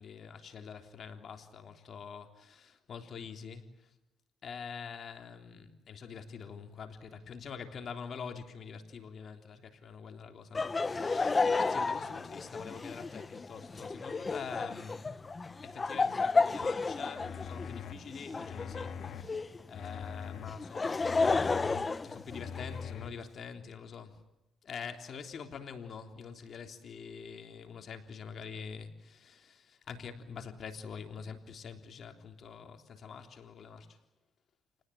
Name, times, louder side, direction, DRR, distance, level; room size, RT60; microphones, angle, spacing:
voice 1, 0.0-3.9 4.4-15.0 15.6-21.6 22.0-24.2 24.6-34.0, left 6 dB, 55° left, 5 dB, 3.4 m, -45 dB
Laughter, 10.5-19.6 20.5-22.8, left 3 dB, 30° left, 1.0 m, -32 dB
sound 1, 16.6-16.7 17.2-17.9 18.4-19.2 19.7-20.5 21.0-21.8 22.3-23.1, left 7 dB, 75° left, 2.4 m, -42 dB
29.5 x 19.5 x 8.6 m, 0.98 s
cardioid pair, 90°, 0 cm